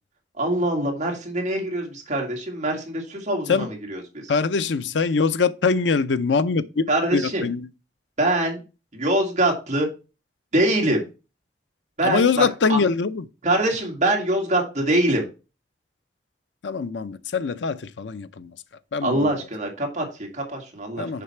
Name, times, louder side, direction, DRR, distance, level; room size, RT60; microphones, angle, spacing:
voice 1, 0.4-4.3 6.9-7.5 8.2-8.6 8.9-9.9 10.5-11.0 12.0-12.8 13.4-15.3 19.0-21.2, right 1 dB, 40° right, 2.1 m, -24 dB
voice 2, 4.3-6.8 7.1-7.7 12.0-13.2 16.6-18.5 18.9-19.3 21.0-21.2, left 5 dB, 90° left, 0.5 m, -23 dB
6.8 x 4.9 x 4.4 m
head